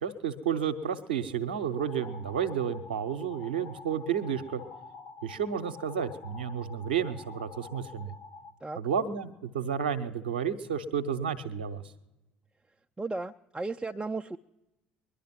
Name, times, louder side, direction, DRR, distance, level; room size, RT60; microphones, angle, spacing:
voice 1, 0.0-4.6 5.2-8.1 8.8-11.8, right 7 dB, 80° right, 9 dB, 0.8 m, -31 dB
sound 1, 1.7-8.5, left 4 dB, 55° left, 1.1 m, -48 dB
voice 2, 13.0-14.4, right 3 dB, 15° right, 4 dB, 0.4 m, -35 dB
21.0 x 11.5 x 5.9 m, 1.0 s
figure-of-eight pair, 60°, 5 cm